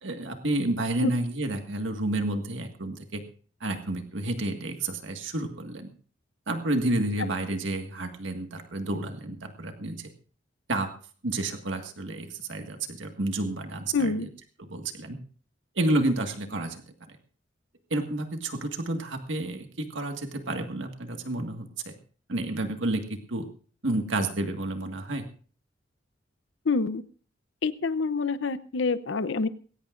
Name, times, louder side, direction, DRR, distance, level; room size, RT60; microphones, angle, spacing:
voice 1, 0.0-3.2 3.6-5.9 6.5-10.1 10.7-10.9 11.2-14.2 14.7-15.2 15.7-16.8 17.1-17.2 17.9-22.0 22.3-23.5 23.8-25.2, right 2 dB, 85° right, 5 dB, 1.8 m, -30 dB
voice 2, 13.9-14.3 26.7-27.0 27.6-29.5, left 4 dB, 80° left, 14 dB, 0.7 m, -26 dB
20.0 x 17.5 x 2.5 m, 0.43 s
head